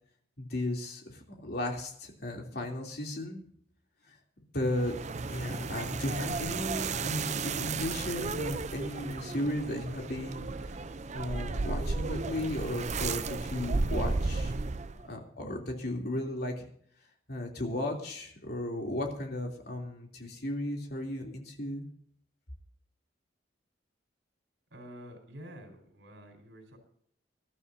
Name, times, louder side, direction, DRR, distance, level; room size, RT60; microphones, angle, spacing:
voice 1, 0.4-3.4 4.1-4.2 4.5-5.0 5.3-10.5 11.1-14.5 15.0-16.7 17.3-21.8, left 1 dB, 60° left, 1 dB, 3.2 m, -35 dB
sound 1, 4.7-15.1, right 3 dB, 40° right, 0.6 m, -34 dB
voice 2, 24.7-26.8, equal, 85° right, 1 dB, 4.5 m, -48 dB
25.5 x 12.5 x 2.7 m, 0.63 s
head